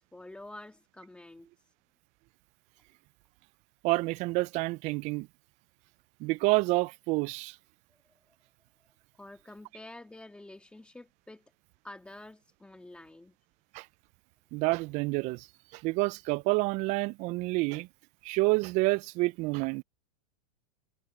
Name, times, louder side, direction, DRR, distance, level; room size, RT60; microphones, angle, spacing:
voice 1, 0.0-1.7 9.2-11.5 11.8-13.3, left 2 dB, 5° left, 1.8 m, -48 dB
voice 2, 3.8-5.3 6.2-7.6 13.7-13.9 14.5-15.5 15.7-17.9 18.2-19.8, right 24 dB, 35° right, 0.4 m, -28 dB
hypercardioid pair, 130°, 20 cm